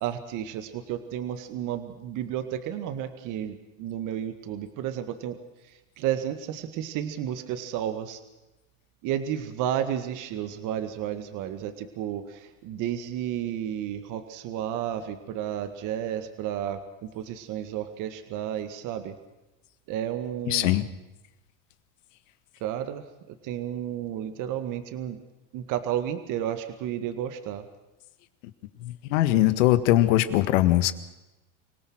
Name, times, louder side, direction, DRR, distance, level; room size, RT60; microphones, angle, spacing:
voice 1, 0.0-8.2 9.0-19.2 19.9-20.8 22.6-25.2 25.5-27.7, right 10 dB, 55° right, 9 dB, 2.0 m, -32 dB
voice 2, 20.5-20.8 28.8-30.9, left 14 dB, 80° left, 12 dB, 1.7 m, -21 dB
26.0 x 17.5 x 6.3 m, 1.0 s
supercardioid pair, 120°, 37 cm